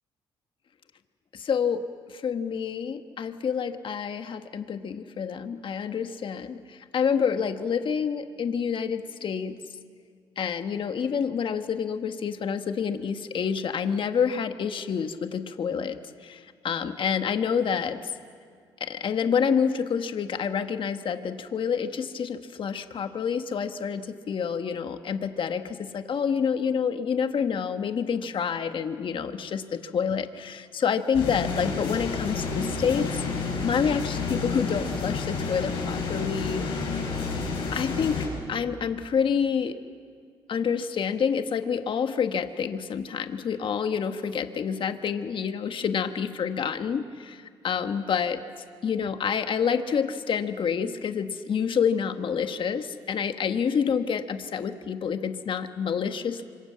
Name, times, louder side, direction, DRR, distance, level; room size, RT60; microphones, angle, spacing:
voice 1, 1.3-9.5 10.4-18.1 18.8-36.6 37.7-39.8 40.5-48.4 48.8-56.4, left 7 dB, 60° left, 8 dB, 1.4 m, -28 dB
sound 1, 31.1-38.3, left 4 dB, 85° left, 6.7 m, -30 dB
26.5 x 26.0 x 7.5 m, 2.1 s
supercardioid pair, 65°, 10 cm